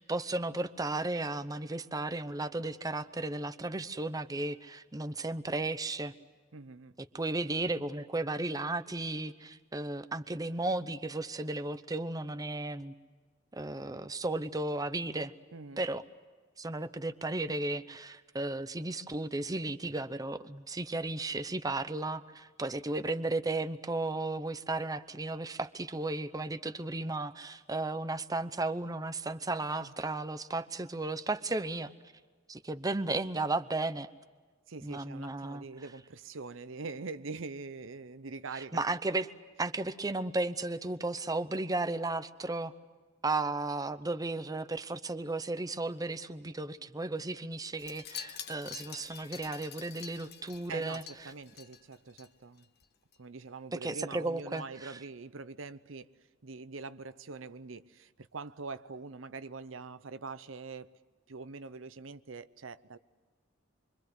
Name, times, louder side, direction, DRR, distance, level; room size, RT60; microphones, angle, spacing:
voice 1, 0.0-6.1 7.1-12.9 13.5-15.3 15.8-16.0 16.6-31.9 32.5-34.1 34.8-35.6 38.7-39.3 39.6-42.7 43.2-51.0 53.8-54.9, right 2 dB, 20° right, 0.8 m, -34 dB
voice 2, 6.5-7.0 15.5-15.8 29.8-29.9 34.7-38.8 50.7-52.7 53.2-61.0 61.3-63.0, right 4 dB, 85° right, 0.8 m, -44 dB
Wind chime, 47.8-52.3 52.6-52.9 53.1-53.2, left 8 dB, 60° left, 1.3 m, -47 dB
26.0 x 24.5 x 8.0 m
head